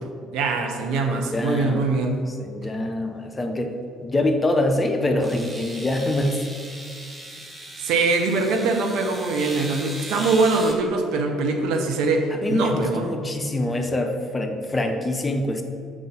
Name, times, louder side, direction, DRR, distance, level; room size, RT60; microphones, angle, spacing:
voice 1, 0.3-2.2 7.8-13.1, right 3 dB, 60° right, 4 dB, 0.6 m, -23 dB
voice 2, 1.1-2.0 2.3-3.8 4.0-6.4 12.3-15.6, left 1 dB, 20° left, 4 dB, 0.7 m, -25 dB
sound 1, 4.3-4.4 5.2-10.7, right 1 dB, 20° right, 1.0 m, -38 dB
4.8 x 3.8 x 5.5 m, 2.2 s
figure-of-eight pair, 50°, 0 cm